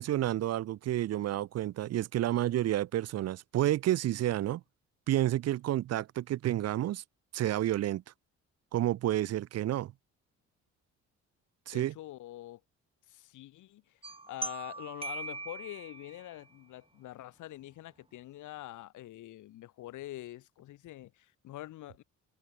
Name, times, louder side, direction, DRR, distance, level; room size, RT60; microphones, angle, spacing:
voice 1, 0.0-4.6 5.1-7.0 7.3-8.0 8.7-9.9 11.7-11.9, right 13 dB, 55° right, 0.5 m, -30 dB
voice 2, 11.7-12.6 13.1-14.0 14.3-22.0, left 15 dB, 80° left, 1.3 m, -45 dB
sound 1, 14.0-16.4, right 3 dB, 20° right, 2.4 m, -41 dB
cardioid pair, 90°, 30 cm